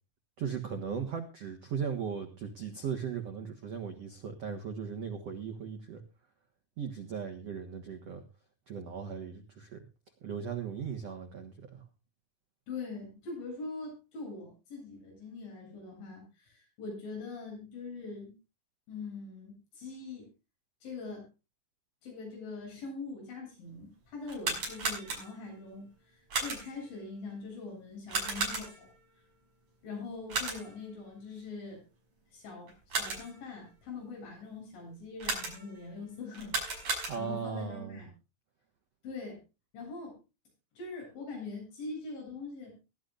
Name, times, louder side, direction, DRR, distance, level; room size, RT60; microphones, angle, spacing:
voice 1, 0.4-6.0 6.8-8.2 8.7-9.8 10.2-11.8 36.9-38.0, right 7 dB, 85° right, 5 dB, 1.4 m, -38 dB
voice 2, 12.7-18.3 18.9-20.3 20.8-21.3 22.0-28.9 29.8-31.8 32.3-36.5 37.1-38.1 39.0-39.4 39.7-40.2 40.8-42.8, left 3 dB, 75° left, 0 dB, 10.5 m, -43 dB
sound 1, 24.2-25.5 26.3-26.9 28.1-29.0 30.3-30.9 32.7-33.4 35.2-35.8 36.3-37.5, right 3 dB, 40° right, 6.7 m, -35 dB
22.0 x 12.0 x 2.5 m, 0.28 s
omnidirectional pair, 5.4 m